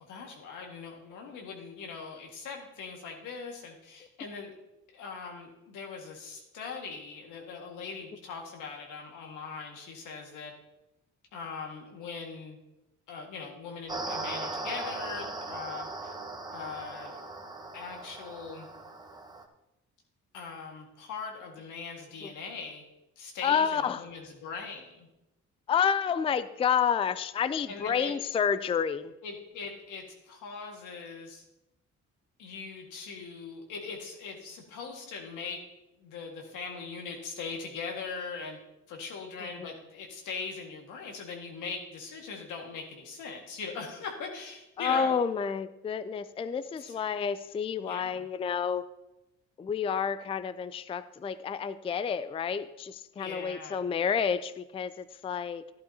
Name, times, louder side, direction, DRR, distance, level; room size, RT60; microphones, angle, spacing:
voice 1, 0.0-4.5 4.9-10.5 11.3-12.6 13.1-16.1 16.5-17.2 17.7-18.7 20.3-22.8 23.2-25.1 27.7-28.1 29.2-31.4 32.4-35.6 36.0-38.6 38.9-45.2 46.8-47.2 47.8-48.2 53.2-53.8, left 5 dB, 85° left, 1 dB, 1.8 m, -40 dB
sound 1, 13.9-19.4, right 2 dB, 15° right, 0.9 m, -39 dB
voice 2, 23.4-24.0 25.7-29.1 39.4-39.7 44.8-48.8 49.6-55.7, left 7 dB, 20° left, 14 dB, 0.3 m, -29 dB
11.5 x 11.0 x 2.8 m, 0.92 s
cardioid pair, 90°, 30 cm